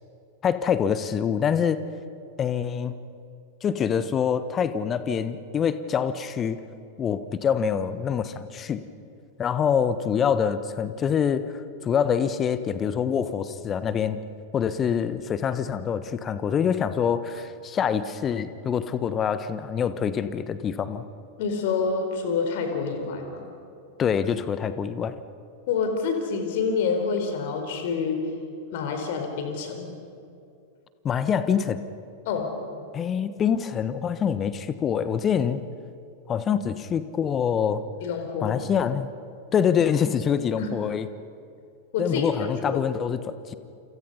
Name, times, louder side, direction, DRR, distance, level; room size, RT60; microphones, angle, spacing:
voice 1, 0.4-1.8 2.4-3.0 3.6-6.6 7.0-8.8 9.4-11.5 11.8-14.2 14.5-21.0 24.0-25.1 31.0-31.8 32.9-35.6 36.3-37.8 38.4-39.1 39.5-41.1 42.0-43.5, left 7 dB, 25° left, 13 dB, 1.2 m, -25 dB
voice 2, 21.4-23.5 25.7-28.2 28.7-29.9 32.3-32.5 38.0-38.6 40.6-40.7 41.9-42.3 42.6-42.8, left 5 dB, 50° left, 5 dB, 4.4 m, -27 dB
29.0 x 27.5 x 5.6 m, 2.5 s
figure-of-eight pair, 90°, 0 cm